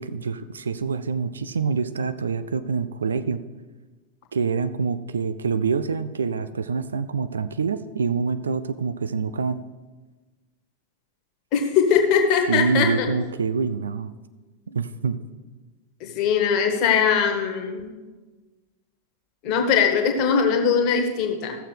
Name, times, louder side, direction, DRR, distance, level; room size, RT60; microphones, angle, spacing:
voice 1, 0.0-3.4 4.3-9.6 12.5-14.1 14.7-15.2, right 5 dB, 70° right, 13 dB, 0.4 m, -26 dB
voice 2, 11.5-13.1 16.0-17.8 19.4-21.6, left 6 dB, 40° left, 3 dB, 1.5 m, -21 dB
14.5 x 6.9 x 3.4 m, 1.3 s
figure-of-eight pair, 90°, 0 cm